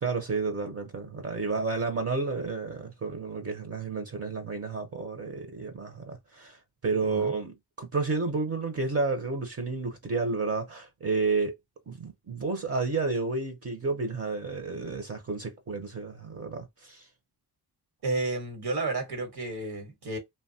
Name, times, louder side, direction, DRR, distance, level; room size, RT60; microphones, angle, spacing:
voice 1, 0.0-6.6 6.8-11.6 11.9-17.0, right 4 dB, 35° right, 0.6 m, -31 dB
voice 2, 7.0-7.3 18.0-20.2, right 2 dB, 75° right, 1.2 m, -31 dB
3.0 x 2.2 x 2.7 m
wide cardioid pair, 110°, 39 cm